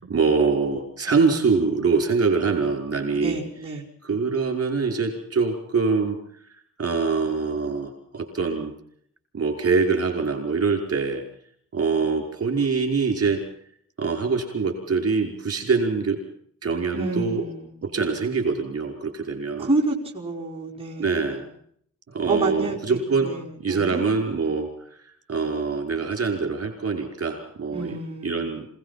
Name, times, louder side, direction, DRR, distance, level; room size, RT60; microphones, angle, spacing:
voice 1, 0.0-3.4 4.0-6.2 6.8-8.7 9.3-11.2 11.7-13.4 14.0-16.2 16.6-17.4 17.8-19.7 21.0-21.4 22.1-23.3 23.6-24.7 25.3-28.7, right 4 dB, 50° right, 3 dB, 5.5 m, -24 dB
voice 2, 3.1-3.8 16.9-17.8 19.6-21.3 22.3-24.0 27.7-28.6, right 2 dB, 20° right, -4 dB, 5.0 m, -29 dB
27.5 x 18.0 x 5.9 m, 0.64 s
wide cardioid pair, 175°, 30 cm